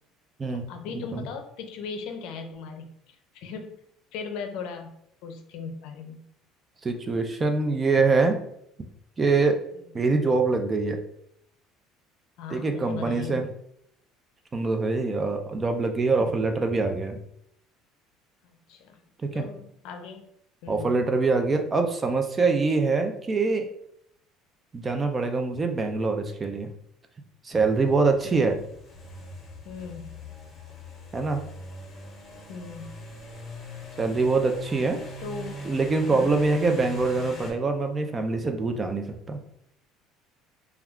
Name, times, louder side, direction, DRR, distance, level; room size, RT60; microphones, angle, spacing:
voice 1, 0.5-3.8 4.1-4.9 5.2-6.3 9.9-10.0 12.4-13.5 16.2-16.3 18.7-19.0 19.3-20.3 20.6-20.9 28.2-28.5 29.6-30.2 32.5-32.9 35.2-35.6 36.1-36.4, left 5 dB, 70° left, 5 dB, 0.5 m, -38 dB
voice 2, 6.8-8.4 9.2-9.6 9.9-11.0 12.5-13.5 14.5-17.2 19.2-19.5 20.7-23.7 24.7-26.7 27.4-28.6 31.1-31.4 34.0-35.0 35.7-39.4, right 3 dB, 25° right, 5 dB, 0.3 m, -24 dB
sound 1, 27.5-37.5, left 1 dB, 30° left, 1.0 m, -42 dB
2.3 x 2.2 x 3.5 m, 0.73 s
cardioid pair, 130°, 0 cm